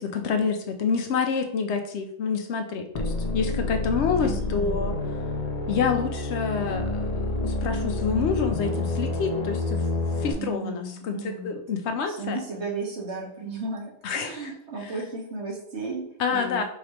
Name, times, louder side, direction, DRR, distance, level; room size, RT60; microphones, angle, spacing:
voice 1, 0.0-5.0 5.7-12.4 14.0-14.5 16.2-16.6, left 5 dB, 65° left, 6 dB, 0.9 m, -28 dB
sound 1, 2.9-10.3, left 2 dB, 45° left, 0.5 m, -28 dB
voice 2, 4.2-5.0 10.3-11.5 12.1-16.6, right 3 dB, 60° right, -2 dB, 1.4 m, -35 dB
4.7 x 3.4 x 2.9 m, 0.69 s
omnidirectional pair, 1.3 m